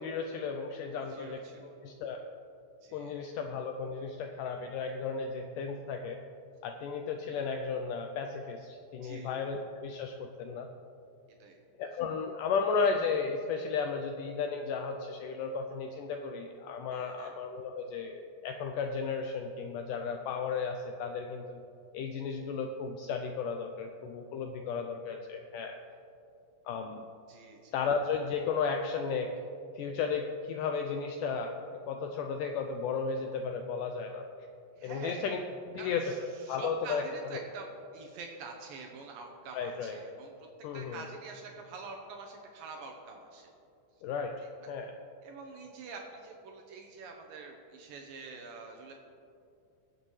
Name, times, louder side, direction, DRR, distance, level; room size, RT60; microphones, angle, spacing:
voice 1, 0.0-1.4 1.8-2.2 2.9-6.2 6.6-10.7 11.8-21.6 21.9-25.8 26.7-27.0 27.7-29.3 29.8-31.5 31.9-34.3 34.8-37.1 39.5-40.0 40.6-41.1 44.0-44.3 44.7-45.0, left 5 dB, 85° left, 4 dB, 1.9 m, -34 dB
voice 2, 1.0-1.8 2.8-3.2 9.0-9.3 11.4-11.6 16.9-17.3 27.3-27.7 34.8-35.3 35.8-40.3 40.7-43.5 44.6-44.7 45.2-48.9, right 4 dB, 75° right, 2 dB, 2.4 m, -46 dB
21.0 x 7.7 x 3.2 m, 2.6 s
omnidirectional pair, 4.3 m